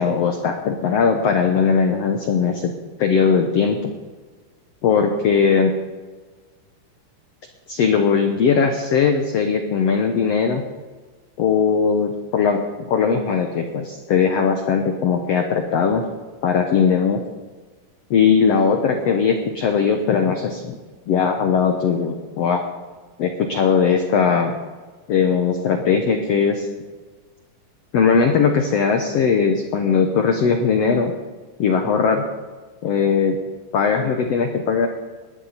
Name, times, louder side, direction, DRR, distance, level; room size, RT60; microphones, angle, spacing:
voice 1, 0.0-2.7 3.0-3.9 4.8-5.7 7.7-10.6 11.4-12.6 12.9-16.0 16.4-17.2 18.1-20.8 21.1-22.6 23.2-24.5 25.1-26.7 27.9-31.1 31.6-32.2 32.8-33.4 33.7-34.9, left 6 dB, 85° left, 5 dB, 1.4 m, -19 dB
19.5 x 11.5 x 4.2 m, 1.3 s
omnidirectional pair, 4.4 m